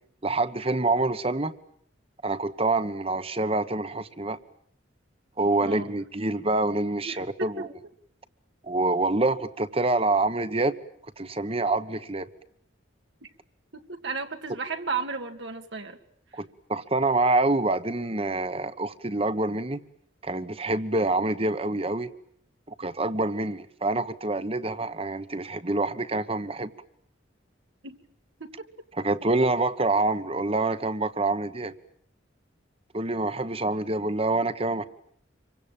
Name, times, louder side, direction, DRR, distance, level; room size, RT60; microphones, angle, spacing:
voice 1, 0.2-1.5 2.2-4.4 5.4-7.7 8.6-10.7 11.2-12.3 16.3-19.8 20.2-22.1 22.8-26.7 29.0-31.7 32.9-34.8, right 2 dB, 30° right, 13 dB, 1.3 m, -26 dB
voice 2, 5.6-6.0 7.0-7.5 13.2-13.3 13.7-16.0 16.3-16.4 27.8-28.0 28.4-28.5, right 4 dB, 70° right, 5 dB, 2.2 m, -34 dB
27.0 x 24.0 x 8.9 m, 0.65 s
head